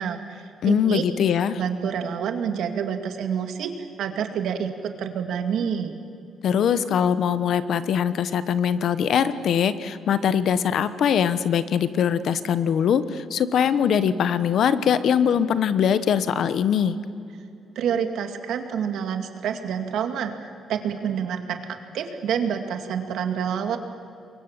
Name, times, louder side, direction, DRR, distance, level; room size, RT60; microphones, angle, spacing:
voice 1, 0.0-1.0 1.6-5.9 17.8-23.8, right 7 dB, 70° right, 6 dB, 2.1 m, -28 dB
voice 2, 0.6-1.6 6.4-17.0, left 8 dB, 60° left, 13 dB, 1.0 m, -22 dB
28.5 x 23.0 x 7.4 m, 2.6 s
cardioid pair, 160°, 0 cm